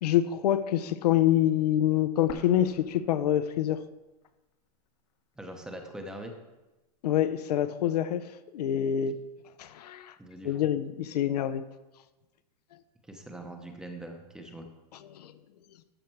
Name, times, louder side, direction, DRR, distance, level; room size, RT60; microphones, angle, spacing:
voice 1, 0.0-3.8 7.0-8.2 8.5-9.2 9.6-10.1 10.4-11.6 15.1-15.3, left 11 dB, 80° left, 13 dB, 0.7 m, -26 dB
sound 1, 2.3-4.2 4.5-4.6 5.3-6.3, left 9 dB, 50° left, 1.0 m, -48 dB
voice 2, 5.4-6.3 10.2-10.6 13.1-14.7, right 1 dB, 5° right, 4 dB, 0.8 m, -42 dB
13.0 x 6.5 x 4.6 m, 1.1 s
supercardioid pair, 165°, 20 cm